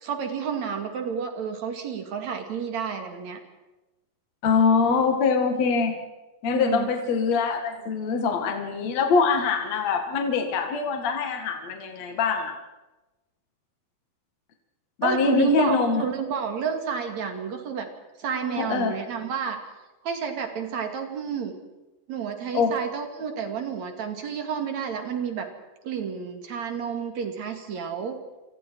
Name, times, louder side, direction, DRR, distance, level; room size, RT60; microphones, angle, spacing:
voice 1, 0.0-3.4 6.5-6.9 15.0-17.9 18.2-19.6 20.0-21.5 22.1-25.5 25.8-28.2, right 7 dB, 55° right, 5 dB, 3.5 m, -30 dB
voice 2, 4.4-6.0 6.4-12.5 15.0-16.0 18.6-18.9 22.5-22.7, left 5 dB, 55° left, 4 dB, 2.9 m, -23 dB
28.0 x 25.0 x 4.7 m, 1.1 s
omnidirectional pair, 4.1 m